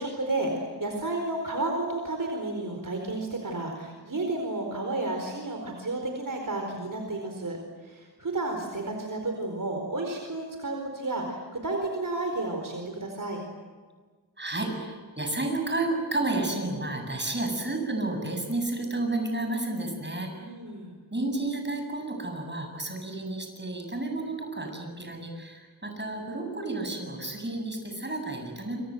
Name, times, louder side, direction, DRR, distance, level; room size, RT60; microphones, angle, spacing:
voice 1, 0.0-7.6 7.8-13.4 20.4-21.0, right 2 dB, 50° right, 2 dB, 4.6 m, -32 dB
voice 2, 14.4-20.3 21.1-28.8, right 2 dB, 25° right, 3 dB, 7.8 m, -31 dB
28.0 x 26.5 x 7.9 m, 1.4 s
wide cardioid pair, 85°, 40 cm